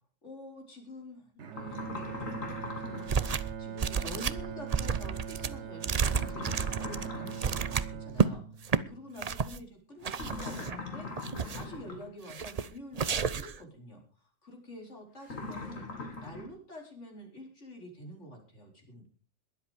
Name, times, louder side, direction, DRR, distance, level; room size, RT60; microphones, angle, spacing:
voice 1, 0.2-2.1 2.8-2.9 3.6-19.1, equal, 65° left, 2 dB, 4.9 m, -47 dB
Bowed string instrument, 1.4-9.6, right 8 dB, 60° right, 1.3 m, -42 dB
sound 1, 1.5-3.3 6.1-7.7 10.1-12.1 15.2-16.5, left 3 dB, 85° left, 3.1 m, -41 dB
sound 2, 3.1-3.5 3.8-8.3 8.6-8.8 9.2-9.6 10.0-10.8 11.2-11.8 12.3-12.7 13.0-13.6, right 6 dB, 40° right, 0.6 m, -31 dB
21.5 x 8.3 x 5.1 m, 0.39 s
omnidirectional pair, 1.3 m